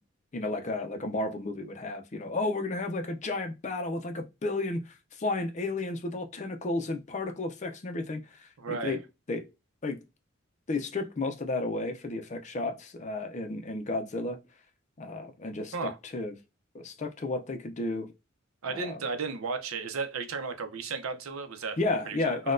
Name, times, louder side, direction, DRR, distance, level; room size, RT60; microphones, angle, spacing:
voice 1, 0.3-9.0 9.3-9.4 9.8-10.0 10.7-14.4 15.0-16.3 16.7-18.1 18.7-19.0 21.8-22.5, left 2 dB, 35° left, 0.4 m, -32 dB
voice 2, 8.6-9.0 15.7-16.0 18.6-21.8 22.1-22.2, right 4 dB, 85° right, 0.6 m, -34 dB
3.9 x 2.2 x 2.5 m
head